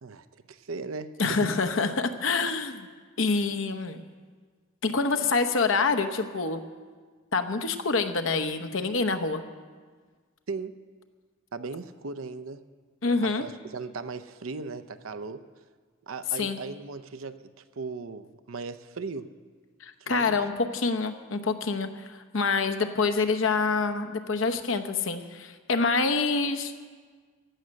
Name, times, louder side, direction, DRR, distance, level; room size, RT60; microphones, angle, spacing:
voice 1, 0.0-1.5 10.5-10.7 11.5-12.6 13.2-15.4 16.1-19.3 20.0-20.4, right 4 dB, 85° right, 12 dB, 0.7 m, -37 dB
voice 2, 1.2-2.9 3.2-4.0 4.8-6.6 7.3-9.4 13.0-13.5 16.3-16.6 19.8-26.8, left 4 dB, 70° left, 8 dB, 0.9 m, -26 dB
16.0 x 6.5 x 9.6 m, 1.5 s
head